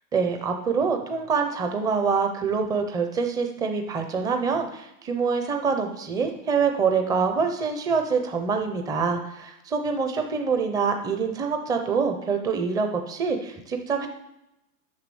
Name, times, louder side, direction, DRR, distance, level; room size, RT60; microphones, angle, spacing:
voice 1, 0.1-14.1, right 5 dB, 10° right, 5 dB, 0.5 m, -25 dB
9.6 x 5.8 x 6.9 m, 0.90 s
supercardioid pair, 145°, 50 cm